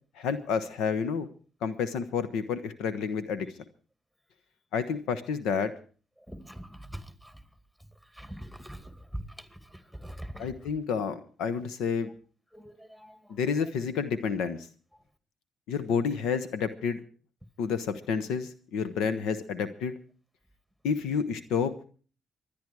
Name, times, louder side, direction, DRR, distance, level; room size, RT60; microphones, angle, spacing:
voice 1, 0.2-1.3 1.6-3.5 4.7-5.7 10.4-12.1 13.3-14.7 15.7-17.0 17.6-19.9 20.8-21.7, left 6 dB, 80° left, 1.0 m, -29 dB
voice 2, 6.2-7.4 8.1-10.5 12.5-13.4, right 1 dB, 5° left, 2.4 m, -43 dB
24.0 x 10.5 x 4.8 m
supercardioid pair, 55°, 0 cm